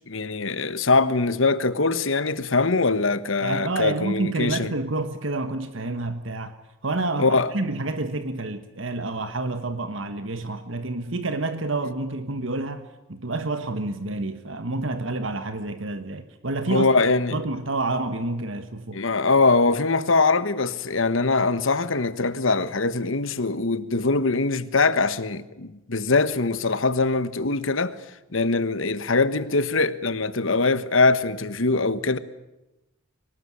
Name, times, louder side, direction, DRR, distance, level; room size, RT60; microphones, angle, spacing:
voice 1, 0.1-4.7 7.2-7.5 16.7-17.4 18.9-27.9 28.3-32.2, left 3 dB, 65° left, 1.3 m, -22 dB
voice 2, 3.4-6.6 6.8-17.0 17.3-19.0, right 2 dB, 60° right, 1.4 m, -29 dB
24.0 x 19.5 x 9.8 m
head